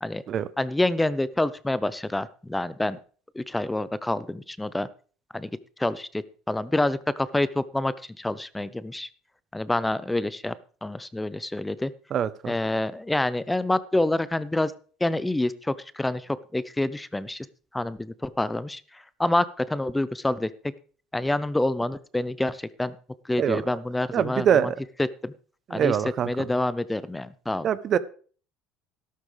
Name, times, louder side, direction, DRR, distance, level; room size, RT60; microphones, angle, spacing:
voice 1, 0.6-3.0 3.4-4.9 5.3-5.5 5.8-9.1 9.5-10.5 10.8-11.9 12.5-14.7 15.0-16.2 16.5-17.5 17.7-18.8 19.2-20.5 21.1-22.9 23.3-24.7 25.0-25.3 25.7-26.0 26.2-27.7, left 1 dB, 10° left, 17 dB, 0.7 m, -27 dB
voice 2, 12.1-12.5 23.4-23.8 24.1-24.8 25.7-26.5 27.6-28.0, right 9 dB, 50° right, 16 dB, 0.8 m, -24 dB
13.0 x 12.5 x 3.4 m, 0.42 s
hypercardioid pair, 75°, 0 cm